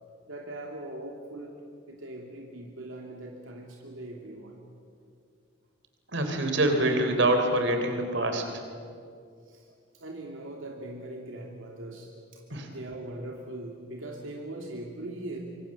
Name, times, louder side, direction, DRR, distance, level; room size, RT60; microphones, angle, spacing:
voice 1, 0.3-1.6 1.9-4.6 9.5-9.7 9.9-12.4 12.7-15.4, right 1 dB, 85° right, 0 dB, 2.9 m, -40 dB
voice 2, 6.1-8.5 12.5-12.7, right 1 dB, 65° right, 5 dB, 3.6 m, -25 dB
25.5 x 25.5 x 7.4 m, 2.3 s
head